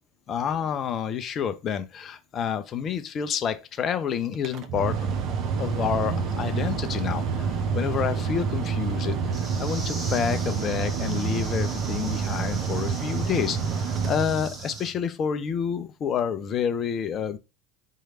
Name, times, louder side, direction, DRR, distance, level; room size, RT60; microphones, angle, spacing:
voice 1, 0.3-5.0 5.6-17.4, left 7 dB, 35° left, 0.6 m, -29 dB
Mechanical fan, 4.3-14.9, right 6 dB, 45° right, 0.7 m, -28 dB
sound 1, 5.5-11.5, left 4 dB, 85° right, 0.5 m, -44 dB
sound 2, 9.3-14.9, right 2 dB, 25° right, 1.3 m, -41 dB
3.8 x 3.2 x 4.2 m
figure-of-eight pair, 75°, 0 cm